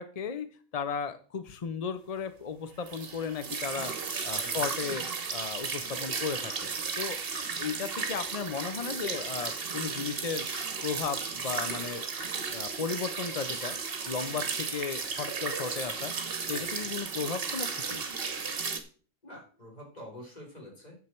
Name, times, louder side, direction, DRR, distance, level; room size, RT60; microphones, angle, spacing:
voice 1, 0.0-3.9 4.2-5.0 5.3-6.5 7.0-7.2 7.6-10.5 10.8-12.0 12.5-13.8 14.1-16.1 16.5-18.0, left 6 dB, 45° left, 11 dB, 0.5 m, -35 dB
sound 1, 2.9-18.8, right 5 dB, 45° right, 1.3 m, -34 dB
voice 2, 4.4-4.7 16.5-16.8 19.2-21.0, equal, 30° left, -1 dB, 3.9 m, -47 dB
9.4 x 7.3 x 4.4 m, 0.40 s
omnidirectional pair, 1.4 m